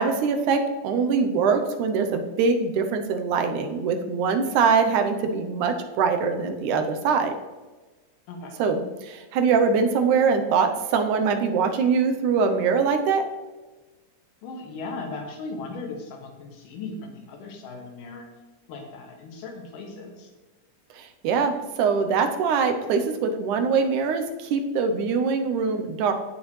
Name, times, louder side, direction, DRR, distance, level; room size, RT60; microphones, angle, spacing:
voice 1, 0.0-7.3 8.6-13.3 20.9-26.1, right 5 dB, 75° right, 6 dB, 2.1 m, -23 dB
voice 2, 8.3-8.6 14.4-18.3 18.7-20.3, left 3 dB, 85° left, 1 dB, 3.1 m, -37 dB
16.0 x 6.1 x 3.2 m, 1.2 s
omnidirectional pair, 3.7 m